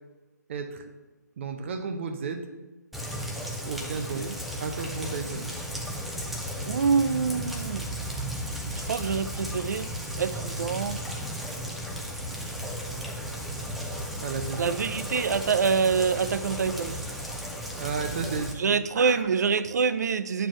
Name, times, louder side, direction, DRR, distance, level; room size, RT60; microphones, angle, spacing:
voice 1, 0.5-0.8 1.4-2.4 3.6-4.3 4.6-5.5 8.6-8.8 14.2-14.7 17.8-18.5 18.9-19.2, right 5 dB, 40° right, 6 dB, 0.8 m, -33 dB
Rain, 2.9-18.5, equal, ahead, 0.5 m, -35 dB
voice 2, 6.7-7.8 8.8-11.1 14.6-17.0 18.6-20.5, right 5 dB, 65° right, 13 dB, 0.4 m, -26 dB
7.3 x 4.6 x 4.5 m, 1.2 s
figure-of-eight pair, 145°, 10 cm